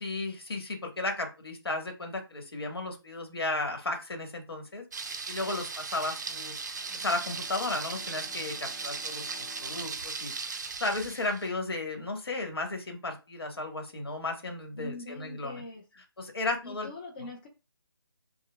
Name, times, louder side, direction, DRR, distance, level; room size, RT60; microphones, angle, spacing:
voice 1, 0.0-4.8 5.3-6.5 6.9-9.3 9.6-15.6 16.2-16.9, left 2 dB, 70° left, 3 dB, 1.3 m, -34 dB
Thunder, 4.9-11.5, right 4 dB, 45° right, 0.5 m, -38 dB
Bowed string instrument, 6.6-12.0, left 4 dB, 40° left, 1.5 m, -54 dB
voice 2, 14.8-15.8 16.6-17.5, left 3 dB, 20° left, -2 dB, 0.6 m, -42 dB
5.5 x 2.1 x 2.2 m, 0.29 s
figure-of-eight pair, 160°, 13 cm